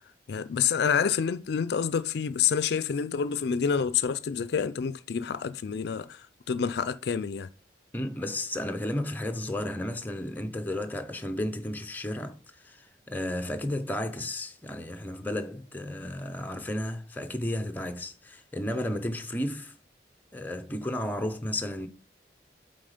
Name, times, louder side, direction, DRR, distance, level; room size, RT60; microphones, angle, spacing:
voice 1, 0.3-7.5, left 7 dB, 65° left, 0.4 m, -28 dB
voice 2, 7.9-19.7 20.3-21.9, left 1 dB, 10° left, 0.7 m, -33 dB
7.8 x 4.0 x 5.0 m
head